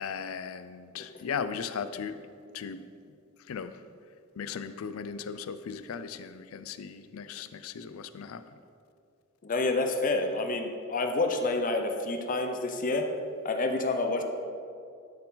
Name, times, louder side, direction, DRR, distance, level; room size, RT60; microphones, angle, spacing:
voice 1, 0.0-2.2 2.5-2.8 3.5-3.8 4.4-8.4, left 6 dB, 90° left, 12 dB, 0.4 m, -37 dB
voice 2, 9.4-13.1 13.4-14.2, left 2 dB, 40° left, 5 dB, 0.6 m, -28 dB
12.0 x 4.5 x 4.0 m, 2.4 s
head